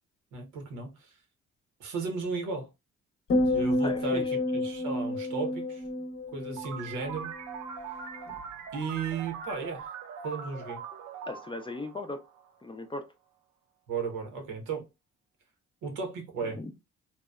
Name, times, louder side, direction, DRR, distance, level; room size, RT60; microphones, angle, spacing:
voice 1, 0.3-1.1 1.8-2.7 3.5-4.2 4.5-5.8 6.3-7.3 8.7-9.8 10.2-10.8 13.9-14.8 15.8-16.6, right 4 dB, 90° right, 0.9 m, -35 dB
sound 1, 3.3-7.7 8.0-8.4, left 1 dB, 45° left, 0.7 m, -30 dB
voice 2, 3.8-4.4 11.3-12.2 12.6-13.1 16.4-16.7, left 2 dB, 15° left, 0.4 m, -38 dB
sound 2, 6.6-12.8, right 6 dB, 70° right, 0.5 m, -42 dB
2.7 x 2.1 x 2.3 m
cardioid pair, 90°, 30 cm